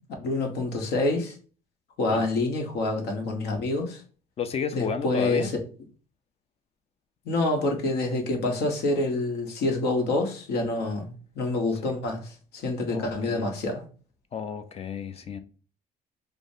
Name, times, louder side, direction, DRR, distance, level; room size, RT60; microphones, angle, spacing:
voice 1, 0.0-1.3 2.0-4.0 4.7-5.5 7.2-13.9, left 2 dB, 75° left, 1.0 m, -27 dB
voice 2, 4.4-5.5 12.9-13.4 14.3-15.4, left 6 dB, 35° left, 0.4 m, -32 dB
4.9 x 2.0 x 2.6 m
cardioid pair, 110°, 17 cm